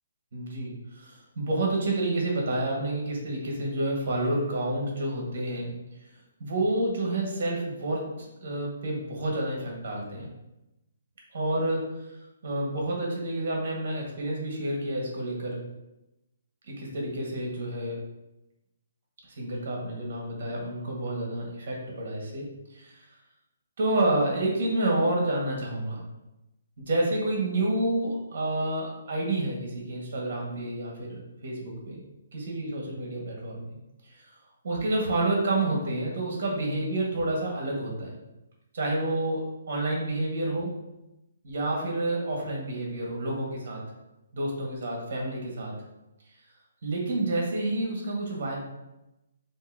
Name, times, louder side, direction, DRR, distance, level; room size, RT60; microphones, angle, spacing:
voice 1, 0.3-5.7 6.4-10.3 11.3-11.9 12.4-15.6 16.7-18.0 19.4-22.5 22.7-22.9 23.8-26.0 26.8-32.0 32.3-33.7 34.6-38.2 38.7-40.7 41.4-43.8 44.3-45.7 46.8-48.6, right 1 dB, 45° right, -2 dB, 1.3 m, -29 dB
6.6 x 2.7 x 2.6 m, 0.95 s
hypercardioid pair, 175°, 0 cm